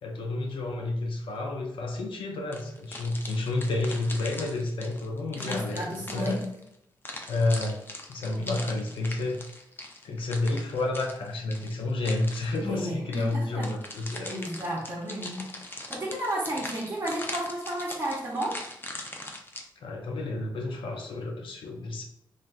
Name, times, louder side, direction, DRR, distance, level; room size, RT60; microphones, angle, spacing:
voice 1, 0.0-5.8 6.1-6.4 7.3-7.8 8.1-9.4 10.0-14.3 19.8-22.0, left 2 dB, 85° left, 1 dB, 0.5 m, -30 dB
sound 1, 2.5-6.7 7.0-12.7 13.1-19.6, left 1 dB, 25° left, 0.5 m, -41 dB
voice 2, 5.4-6.4 8.4-8.6 12.6-13.7 14.3-18.6, equal, 30° right, -6 dB, 0.8 m, -33 dB
3.2 x 2.5 x 2.3 m, 0.78 s
cardioid pair, 75°, 9 cm